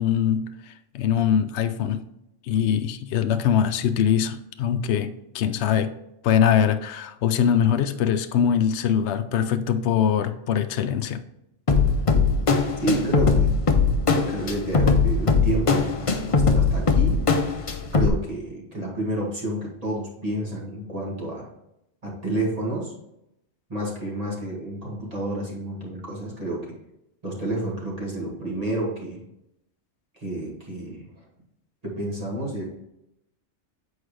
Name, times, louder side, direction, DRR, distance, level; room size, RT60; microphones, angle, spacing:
voice 1, 0.0-2.0 2.5-5.9 6.2-11.2, left 8 dB, 65° left, 8 dB, 0.8 m, -22 dB
sound 1, 11.7-18.1, left 4 dB, 40° left, 0.5 m, -20 dB
voice 2, 12.8-13.6 14.1-17.2 17.9-21.5 22.0-22.9 23.7-26.7 27.2-29.2 30.2-31.1 31.8-32.6, right 1 dB, 30° right, -4 dB, 1.9 m, -30 dB
8.1 x 4.6 x 3.2 m, 0.83 s
omnidirectional pair, 1.3 m